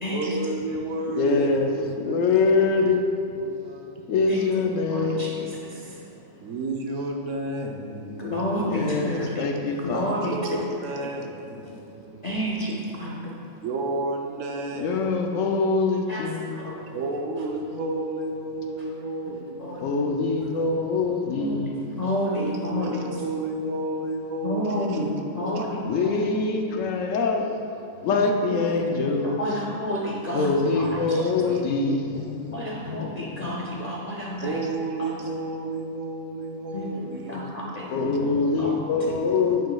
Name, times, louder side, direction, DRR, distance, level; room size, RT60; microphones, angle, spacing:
voice 1, 0.1-2.4 3.3-4.5 5.8-6.0 6.4-8.4 9.3-9.4 9.8-12.3 12.6-12.7 13.6-15.1 16.9-19.8 20.4-20.8 22.3-25.6 26.0-26.3 27.9-29.2 30.3-30.5 30.8-31.7 32.1-32.7 34.4-37.8, right 2 dB, 70° right, 1 dB, 1.0 m, -32 dB
voice 2, 1.1-3.1 4.1-5.3 8.7-10.1 14.8-16.7 19.8-21.9 25.8-27.5 28.0-29.4 30.3-32.6 32.8-33.6 37.9-39.7, left 4 dB, 75° left, 3 dB, 0.9 m, -24 dB
voice 3, 4.9-6.5 8.2-10.6 10.9-11.1 12.2-13.6 16.1-16.9 19.6-19.9 21.3-21.6 22.0-23.2 24.4-26.2 28.6-31.3 32.5-34.6 36.7-38.1 38.6-38.8, equal, 50° left, -4 dB, 0.5 m, -31 dB
9.0 x 6.1 x 2.3 m, 2.6 s
omnidirectional pair, 1.4 m